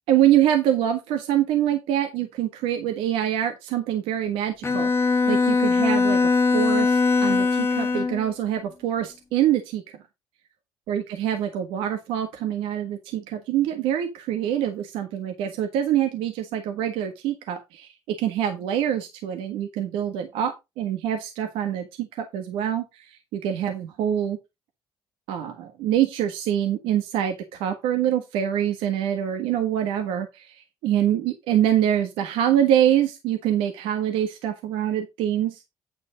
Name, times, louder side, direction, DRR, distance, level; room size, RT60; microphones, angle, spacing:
voice 1, 0.1-4.9 5.3-9.8 10.9-24.4 25.3-35.6, right 10 dB, 85° right, 6 dB, 1.5 m, -25 dB
Bowed string instrument, 4.6-8.3, left 4 dB, 25° left, 1.1 m, -21 dB
9.4 x 5.2 x 5.0 m, 0.23 s
cardioid pair, 100°, 9 cm